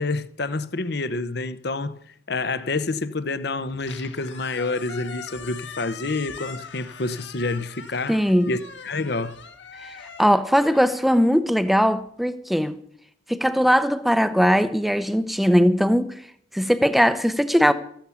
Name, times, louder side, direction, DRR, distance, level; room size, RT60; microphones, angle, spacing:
voice 1, 0.0-2.0 2.3-9.4, left 3 dB, 55° left, 0.8 m, -28 dB
Squeak, 3.7-11.9, left 5 dB, 70° left, 1.9 m, -42 dB
voice 2, 8.1-8.5 9.8-9.9 10.2-12.8 13.3-16.2 16.5-17.7, equal, ahead, 0.7 m, -20 dB
14.5 x 11.5 x 7.0 m
head